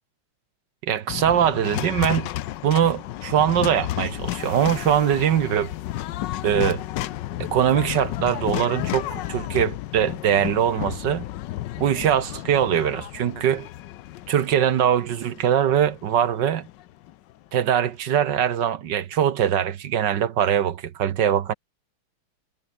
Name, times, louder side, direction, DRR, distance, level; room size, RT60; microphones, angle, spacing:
voice 1, 0.8-2.3 2.6-5.7 6.4-6.8 7.4-11.2 11.8-13.7 14.3-16.7 17.5-21.5, right 9 dB, 60° right, 1.6 m, -22 dB
sound 1, 1.1-17.3, left 14 dB, 70° left, 1.2 m, -32 dB
omnidirectional pair, 2.3 m